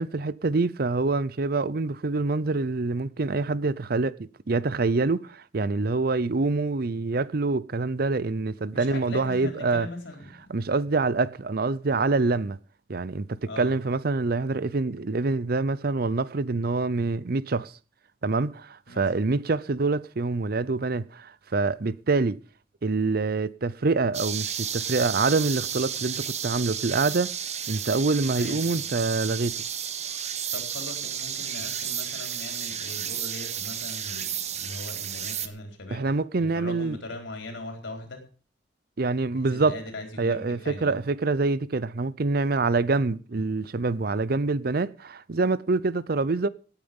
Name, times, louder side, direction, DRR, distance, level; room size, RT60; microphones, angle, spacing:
voice 1, 0.0-9.9 10.5-12.6 12.9-17.7 18.2-22.4 22.8-27.3 27.7-29.6 35.9-37.0 39.0-39.8 40.2-46.5, right 3 dB, 55° right, 0.6 m, -26 dB
voice 2, 8.7-10.5 13.5-13.8 18.9-19.0 28.3-28.8 30.5-38.2 39.3-41.0, left 2 dB, 85° left, 4.5 m, -40 dB
sound 1, 24.1-35.5, right 9 dB, 40° right, 1.2 m, -32 dB
18.0 x 9.0 x 5.4 m
head